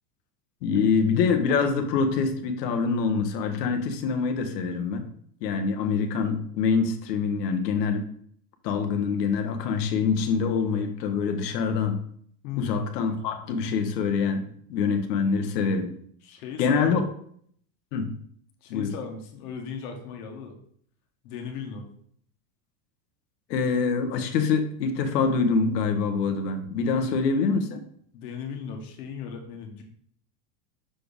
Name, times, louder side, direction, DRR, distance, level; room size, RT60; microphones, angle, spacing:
voice 1, 0.6-5.1 5.4-8.1 8.6-12.0 12.6-15.9 16.6-17.0 17.9-18.2 18.7-18.9 23.5-27.8, left 5 dB, 85° left, 7 dB, 1.1 m, -25 dB
voice 2, 12.4-12.8 16.2-17.0 18.6-20.5 21.2-21.9 26.9-27.2 28.1-29.8, left 6 dB, 70° left, 3 dB, 1.5 m, -37 dB
6.5 x 4.3 x 3.4 m, 0.62 s
supercardioid pair, 145°, 47 cm